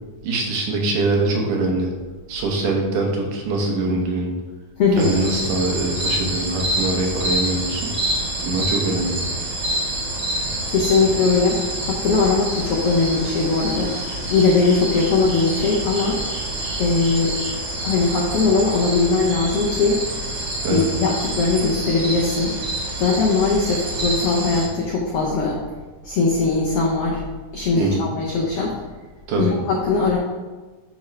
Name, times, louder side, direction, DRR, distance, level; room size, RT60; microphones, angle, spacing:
voice 1, 0.2-1.9 2.3-4.3 5.0-7.9 8.4-9.2 20.6-20.9 27.8-28.1 29.3-29.5, right 2 dB, 75° right, 0 dB, 2.6 m, -23 dB
voice 2, 4.8-5.1 10.7-13.9 14.3-16.2 16.8-17.4 17.8-20.0 20.7-22.5 23.0-25.6 26.0-27.2 27.5-28.8 29.4-30.2, left 4 dB, 90° left, -2 dB, 1.3 m, -20 dB
sound 1, 5.0-24.7, right 1 dB, 50° right, 1.4 m, -27 dB
10.5 x 3.8 x 3.2 m, 1.3 s
omnidirectional pair, 3.8 m